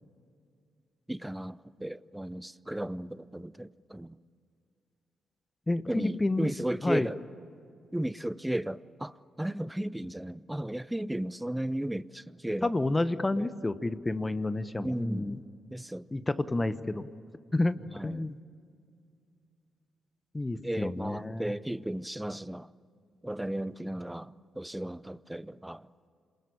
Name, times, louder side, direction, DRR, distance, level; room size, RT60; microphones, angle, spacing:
voice 1, 1.1-4.2 5.9-7.2 7.9-12.7 13.4-13.5 14.8-15.3 15.7-16.1 17.9-18.3 20.6-22.7 23.2-25.9, right 1 dB, 10° right, 0.7 m, -35 dB
voice 2, 5.7-6.5 6.8-7.1 12.6-15.4 16.1-17.1 17.5-17.8 18.0-18.4 20.3-21.5, left 2 dB, 20° left, 1.2 m, -30 dB
27.5 x 21.0 x 8.7 m
hypercardioid pair, 45°, 0 cm